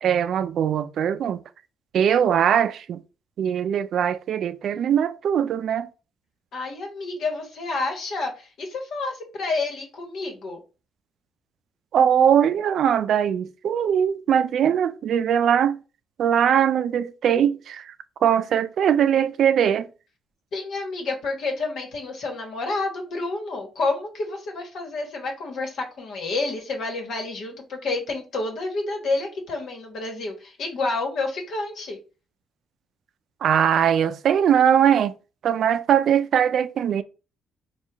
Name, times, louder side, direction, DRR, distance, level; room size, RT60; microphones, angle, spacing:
voice 1, 0.0-1.4 1.9-3.0 3.4-5.9 11.9-15.8 16.2-17.9 18.2-19.9 33.4-35.1 35.4-37.0, right 9 dB, 65° right, 0.3 m, -21 dB
voice 2, 6.5-10.6 20.5-32.0, left 3 dB, 70° left, 1.2 m, -29 dB
4.4 x 2.3 x 3.4 m
cardioid pair, 90°, 0 cm